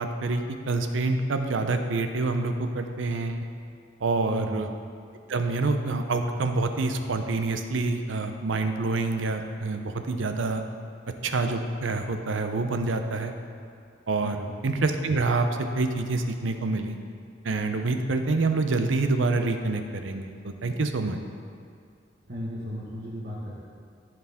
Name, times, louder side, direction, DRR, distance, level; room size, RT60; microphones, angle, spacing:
voice 1, 0.0-3.4 4.0-4.7 5.3-10.6 11.2-13.3 14.1-15.5 15.8-17.0 17.4-21.2, right 3 dB, 90° right, 7 dB, 0.6 m, -27 dB
voice 2, 4.3-4.6 14.2-14.5 22.3-23.6, equal, 50° right, -8 dB, 1.3 m, -35 dB
14.0 x 4.9 x 3.5 m, 2.3 s
head